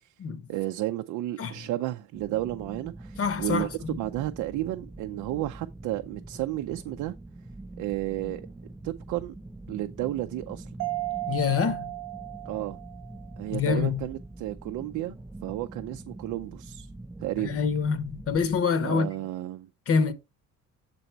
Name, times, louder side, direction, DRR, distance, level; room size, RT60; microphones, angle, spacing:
voice 1, 0.5-3.7 4.0-7.1 7.8-8.5 8.8-9.3 9.7-10.7 12.5-12.8 13.4-15.2 15.4-16.9 17.2-17.6 18.8-19.7, right 15 dB, 75° right, 0.5 m, -32 dB
sound 1, 2.1-18.6, right 2 dB, 5° right, 0.4 m, -44 dB
voice 2, 3.2-4.0 11.3-11.9 13.5-14.1 17.4-19.1 19.9-20.1, left 6 dB, 45° left, 0.8 m, -26 dB
Mallet percussion, 10.8-13.3, right 17 dB, 55° right, 0.9 m, -34 dB
6.9 x 4.0 x 4.4 m
cardioid pair, 105°, 31 cm